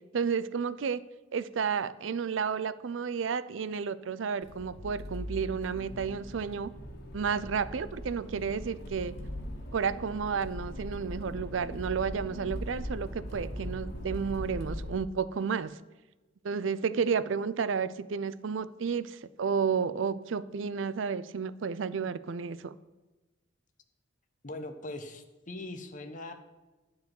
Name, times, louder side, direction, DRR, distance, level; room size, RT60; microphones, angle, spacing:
voice 1, 0.1-1.0 1.3-6.7 7.1-9.1 9.7-15.7 16.4-22.7, right 6 dB, 75° right, 16 dB, 0.5 m, -31 dB
Accelerating revving vroom, 4.4-14.9, equal, 60° left, 1.9 m, -40 dB
voice 2, 24.4-26.3, left 2 dB, 40° left, 7 dB, 1.1 m, -41 dB
10.5 x 4.8 x 7.7 m, 1.2 s
head